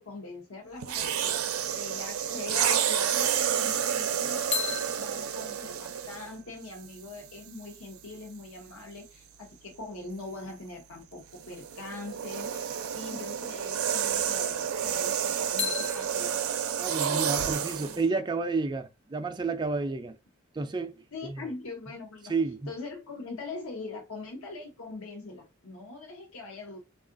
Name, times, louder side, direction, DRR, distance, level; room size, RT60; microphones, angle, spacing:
voice 1, 0.0-1.3 1.7-16.4 17.4-18.0 21.1-22.3 22.7-26.8, left 3 dB, 80° left, 0.8 m, -42 dB
sound 1, 0.8-6.3 7.2-7.4 11.3-18.0, right 9 dB, 85° right, 0.5 m, -30 dB
sound 2, 4.5-8.4 15.6-19.4, left 5 dB, 30° left, 0.6 m, -39 dB
voice 2, 16.8-20.2 20.5-21.4 22.3-22.7, right 3 dB, 20° right, 0.3 m, -31 dB
3.6 x 2.3 x 2.5 m
head